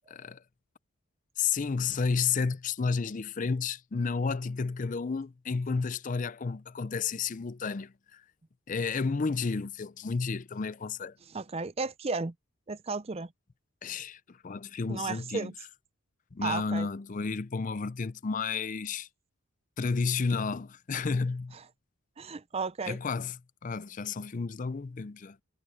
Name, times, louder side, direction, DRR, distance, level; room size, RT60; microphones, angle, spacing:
voice 1, 0.1-0.4 1.4-8.2 8.7-11.1 13.8-15.5 16.3-19.1 19.8-21.5 22.9-23.4 23.6-25.4, left 5 dB, 35° left, 0.4 m, -31 dB
voice 2, 11.3-12.3 12.7-13.3 14.9-15.5 16.4-16.9 21.5-21.6 22.2-23.0, right 4 dB, 25° right, 0.5 m, -34 dB
head